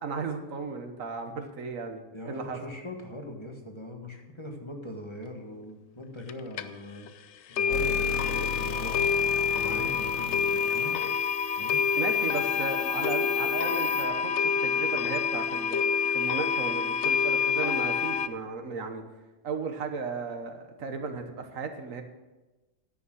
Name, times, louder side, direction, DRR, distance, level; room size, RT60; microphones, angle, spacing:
voice 1, 0.0-2.6 12.0-15.8 16.1-19.0 19.4-22.0, right 4 dB, 85° right, 6 dB, 1.5 m, -35 dB
voice 2, 2.1-7.1 7.5-9.3 9.5-11.0 11.6-11.9 12.3-12.4, left 1 dB, 20° left, 2 dB, 1.4 m, -41 dB
sound 1, 6.3-6.4 6.6-6.7 7.1-7.2 7.6-18.3, left 6 dB, 65° left, 0.9 m, -27 dB
sound 2, 7.7-14.0, left 6 dB, 85° left, 1.2 m, -38 dB
10.5 x 8.4 x 6.2 m, 1.1 s
omnidirectional pair, 1.4 m